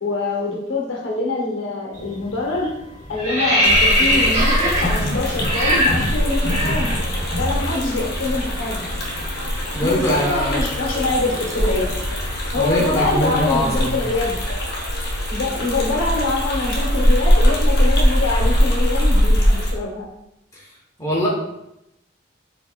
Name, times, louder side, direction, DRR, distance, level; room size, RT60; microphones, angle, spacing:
voice 1, 0.0-2.7 3.1-6.9 7.4-8.8 9.8-11.9 12.5-14.4 15.3-20.1, left 2 dB, 85° left, -1 dB, 0.9 m, -24 dB
sound 1, 1.9-2.2 2.5-7.5 7.8-7.9 8.3-12.3, equal, 40° right, 0.7 m, -22 dB
sound 2, 3.6-19.7, equal, 55° left, 0.7 m, -21 dB
voice 2, 9.7-10.6 12.6-14.0 20.5-20.6 21.0-21.3, equal, 15° left, -6 dB, 0.9 m, -22 dB
4.3 x 2.8 x 2.2 m, 0.84 s
head